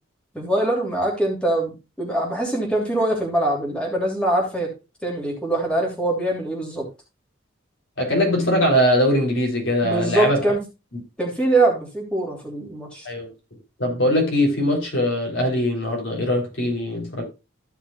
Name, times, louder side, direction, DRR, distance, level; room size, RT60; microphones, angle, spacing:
voice 1, 0.3-4.7 5.0-6.9 9.8-10.6 11.2-13.1, right 2 dB, 5° left, 2.9 m, -23 dB
voice 2, 8.0-10.4 13.0-13.3 13.8-17.2, equal, 75° left, 3.9 m, -21 dB
14.5 x 5.9 x 2.4 m
head